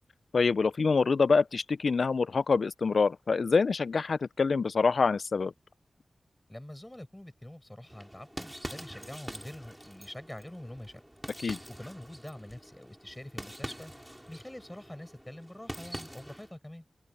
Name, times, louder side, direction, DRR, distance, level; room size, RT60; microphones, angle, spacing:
voice 1, 0.3-5.5 11.4-11.6, left 4 dB, 75° left, 0.3 m, -26 dB
voice 2, 6.5-11.0 11.8-13.9 14.3-16.8, left 1 dB, 15° left, 7.5 m, -45 dB
sound 1, 7.9-16.5, equal, 5° right, 5.4 m, -45 dB
open air
wide cardioid pair, 75°, 0 cm